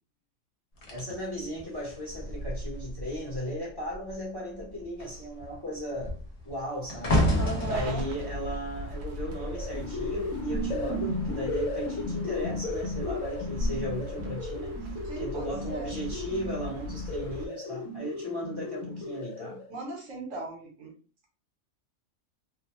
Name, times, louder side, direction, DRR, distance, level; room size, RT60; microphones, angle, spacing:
sound 1, 0.8-3.5 3.8-4.2 4.5-9.8 10.6-10.8, equal, 50° left, 0.4 m, -31 dB
voice 1, 0.9-6.2 6.4-7.2 7.6-14.8 15.2-19.6, equal, 20° left, 0.8 m, -36 dB
voice 2, 7.4-8.1 15.0-16.0 19.7-21.0, right 2 dB, 70° right, 1.1 m, -37 dB
sound 2, 7.6-17.5, equal, 90° right, 0.4 m, -38 dB
sound 3, 9.2-19.7, left 2 dB, 75° left, 0.9 m, -35 dB
2.5 x 2.1 x 2.9 m
omnidirectional pair, 1.4 m